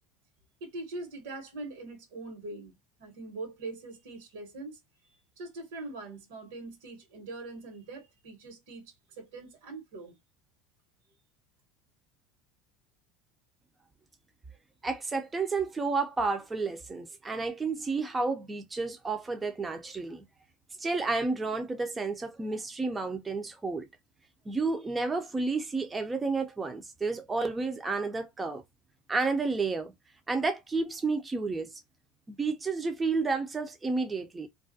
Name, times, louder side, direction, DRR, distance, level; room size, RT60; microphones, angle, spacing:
voice 1, 0.6-2.7 3.0-4.8 5.4-10.2, right 2 dB, 80° right, 1.1 m, -42 dB
voice 2, 14.8-20.2 20.8-23.9 24.5-28.6 29.1-29.9 30.3-31.8 32.3-34.5, right 3 dB, 15° right, 0.4 m, -31 dB
2.4 x 2.1 x 2.4 m
supercardioid pair, 115°, 0 cm